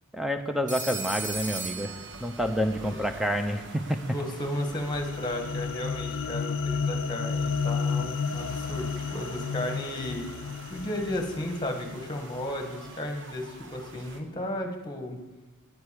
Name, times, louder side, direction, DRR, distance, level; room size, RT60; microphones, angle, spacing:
voice 1, 0.1-4.0, equal, ahead, 6 dB, 0.8 m, -28 dB
Telephone, 0.7-2.7, right 4 dB, 35° right, 1.3 m, -36 dB
sound 1, 1.2-14.2, right 2 dB, 55° right, 1.3 m, -46 dB
voice 2, 4.1-10.2 10.7-15.2, left 1 dB, 20° left, 4 dB, 1.6 m, -34 dB
sound 2, 4.5-12.9, left 5 dB, 60° left, 0.4 m, -32 dB
9.6 x 8.3 x 8.4 m, 1.3 s
head